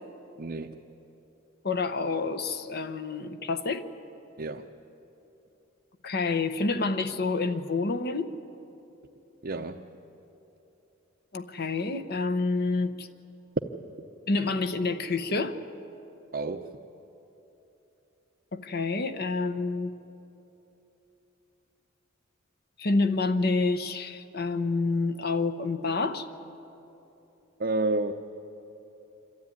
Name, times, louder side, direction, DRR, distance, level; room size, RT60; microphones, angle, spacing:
voice 1, 0.4-0.8 4.4-4.7 9.4-9.8 16.3-16.7 27.6-28.1, right 2 dB, 45° right, 0.7 m, -30 dB
voice 2, 1.6-3.8 6.0-8.3 11.3-13.1 14.3-15.6 18.5-19.9 22.8-26.3, left 3 dB, 50° left, 0.9 m, -28 dB
27.0 x 13.0 x 9.5 m
head